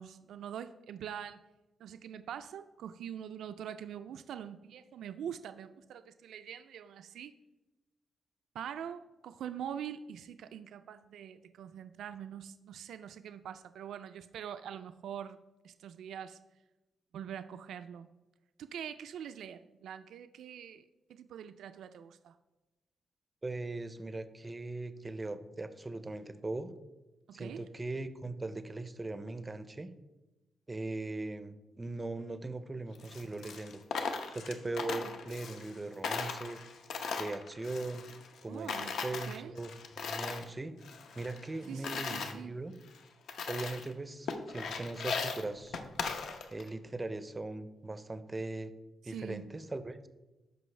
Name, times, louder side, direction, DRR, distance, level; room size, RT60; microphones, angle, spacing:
voice 1, 0.0-1.4 1.8-7.3 8.5-15.4 15.6-16.4 17.1-18.1 18.6-20.8 21.1-22.4 27.3-27.6 35.0-35.2 38.5-39.5 41.7-42.5 49.0-49.5, right 9 dB, 90° right, 10 dB, 0.3 m, -44 dB
voice 2, 23.4-26.7 27.3-29.9 30.7-33.8 34.3-36.6 37.2-38.0 38.4-40.7 41.1-42.7 43.5-45.8 46.5-48.7 49.0-50.1, right 2 dB, 15° right, 12 dB, 0.4 m, -39 dB
Coin (dropping), 33.0-35.8 36.0-38.4 38.7-40.5 40.8-42.3 42.9-43.0 43.3-43.9 44.3-46.7, left 5 dB, 75° left, 0.7 m, -38 dB
13.0 x 5.3 x 3.2 m, 1.1 s
wide cardioid pair, 175°, 0 cm